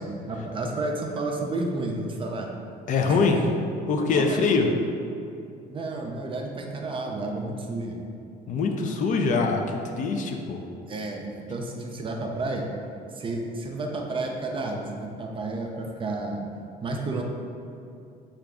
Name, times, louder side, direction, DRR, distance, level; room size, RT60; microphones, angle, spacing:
voice 1, 0.0-2.5 3.1-3.2 4.1-4.4 5.7-8.0 10.9-12.6 13.1-16.5 16.8-17.2, right 2 dB, 30° right, 1 dB, 0.4 m, -31 dB
voice 2, 2.9-3.4 3.9-4.7 8.5-10.7, left 4 dB, 50° left, 3 dB, 0.4 m, -23 dB
3.8 x 2.4 x 3.4 m, 2.6 s
cardioid pair, 110°, 17 cm